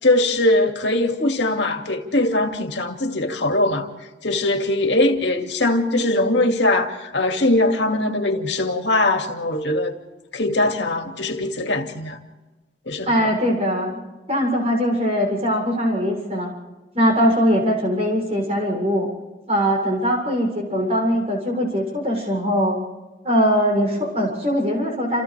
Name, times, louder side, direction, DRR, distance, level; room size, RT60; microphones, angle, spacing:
voice 1, 0.0-3.9 4.2-10.0 10.3-12.2 12.9-13.3, left 2 dB, 85° left, 2.3 m, -21 dB
voice 2, 13.1-14.0 14.3-16.5 16.9-19.1 19.5-22.8 23.2-25.2, equal, 35° right, 7.0 m, -21 dB
29.0 x 29.0 x 3.4 m
head